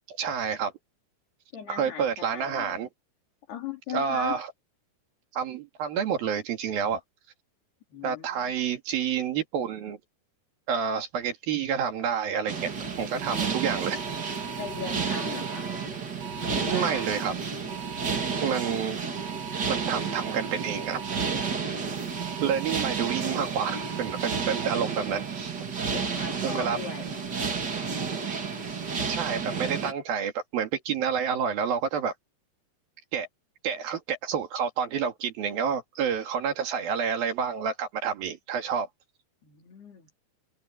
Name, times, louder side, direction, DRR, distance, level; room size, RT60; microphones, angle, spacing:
voice 1, 0.2-0.7 1.7-2.9 3.9-4.5 5.3-7.0 8.0-10.0 10.7-12.7 13.0-14.1 16.7-17.3 18.4-19.0 19.7-21.0 22.4-25.6 26.4-26.8 29.1-32.1 33.1-33.3 33.6-38.9, right 7 dB, 65° right, 4.0 m, -29 dB
voice 2, 1.5-2.9 3.5-4.4 7.9-8.5 14.6-15.7 16.4-17.1 25.9-27.2 39.4-40.1, left 8 dB, 75° left, 5.6 m, -39 dB
sound 1, 12.5-29.9, right 5 dB, 30° right, 2.1 m, -31 dB
sound 2, 13.2-15.6 16.2-17.3 17.7-18.7 19.2-21.5 22.2-23.2 23.6-24.7, right 8 dB, 90° right, 4.2 m, -41 dB
omnidirectional pair, 4.6 m